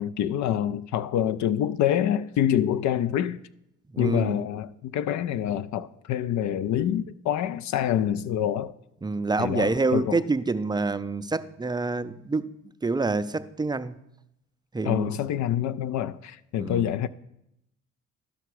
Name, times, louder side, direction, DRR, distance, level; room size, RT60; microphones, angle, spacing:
voice 1, 0.0-3.4 4.0-8.7 9.4-10.2 14.8-17.1, left 10 dB, 70° left, 0.4 m, -26 dB
voice 2, 3.9-4.4 9.0-12.5 12.8-13.9 14.7-15.1 16.6-16.8, right 3 dB, 15° right, 0.4 m, -27 dB
12.5 x 5.8 x 4.7 m
cardioid pair, 90°, 30 cm